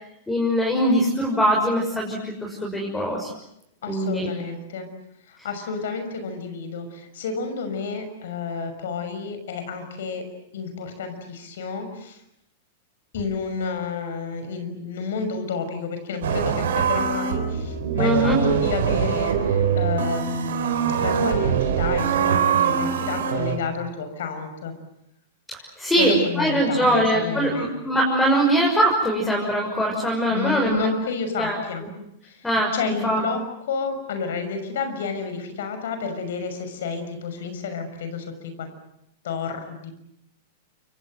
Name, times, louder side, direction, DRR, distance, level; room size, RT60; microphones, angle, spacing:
voice 1, 0.3-3.3 3.9-4.3 18.0-18.4 25.8-30.9 31.4-31.6 32.4-32.7 33.0-33.2, right 1 dB, 10° left, -1 dB, 6.5 m, -22 dB
voice 2, 3.8-4.9 5.3-10.3 10.5-12.2 13.1-24.7 26.0-27.7 30.3-31.8 32.2-32.5 32.7-33.4 33.7-38.7 39.2-39.9, left 5 dB, 75° left, 8 dB, 6.2 m, -30 dB
sound 1, 16.2-23.6, right 7 dB, 75° right, 4.4 m, -23 dB
29.0 x 24.5 x 7.8 m, 0.78 s
hypercardioid pair, 115°, 0 cm